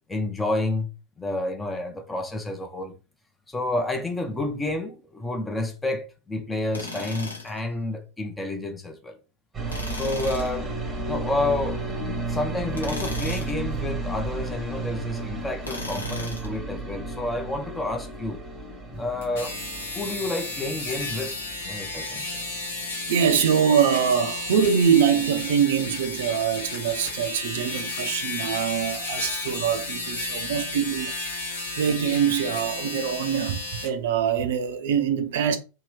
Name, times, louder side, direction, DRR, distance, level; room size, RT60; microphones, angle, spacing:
voice 1, 0.1-0.9 1.2-3.0 3.5-9.2 9.9-10.8 11.1-18.4 18.9-19.5 19.9-21.3 21.6-22.4, left 2 dB, 10° left, 0.6 m, -30 dB
Tools, 6.7-7.6 9.7-10.5 12.7-13.6 15.6-16.6, left 2 dB, 80° left, 0.9 m, -36 dB
sound 1, 9.5-25.3 25.6-26.4, right 2 dB, 15° right, 0.9 m, -34 dB
sound 2, 19.2-33.9, left 2 dB, 65° left, 1.2 m, -33 dB
voice 2, 23.1-35.6, right 8 dB, 55° right, 0.5 m, -24 dB
3.0 x 2.8 x 3.0 m
figure-of-eight pair, 90°, 0 cm